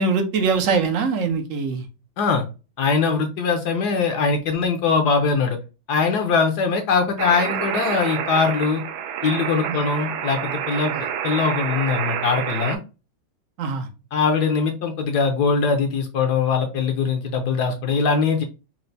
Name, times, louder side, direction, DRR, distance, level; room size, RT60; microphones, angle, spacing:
voice 1, 0.0-1.9 9.7-9.8 13.6-13.9, right 4 dB, 70° right, 6 dB, 0.7 m, -22 dB
voice 2, 2.8-5.6 5.9-8.8 9.2-10.9 11.2-12.8 14.1-18.4, left 5 dB, 70° left, 5 dB, 1.0 m, -21 dB
sound 1, 7.2-12.8, right 9 dB, 90° right, 1.5 m, -28 dB
4.4 x 2.0 x 3.9 m, 0.30 s
omnidirectional pair, 2.2 m